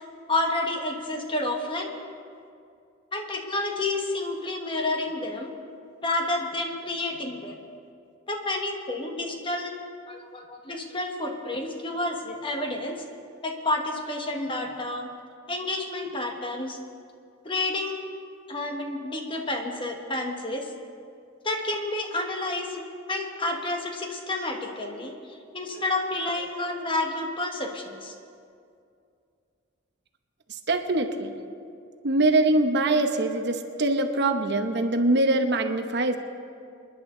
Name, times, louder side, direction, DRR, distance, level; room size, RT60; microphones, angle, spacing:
voice 1, 0.3-1.9 3.1-5.5 6.0-7.6 8.3-9.7 10.1-13.0 13.4-15.1 15.5-16.8 17.4-17.9 18.5-20.7 21.4-22.8 23.1-28.1, left 2 dB, 25° left, 2 dB, 1.4 m, -30 dB
voice 2, 30.7-31.3 32.0-36.2, right 2 dB, 60° right, 6 dB, 1.0 m, -23 dB
27.0 x 10.5 x 3.8 m, 2.4 s
head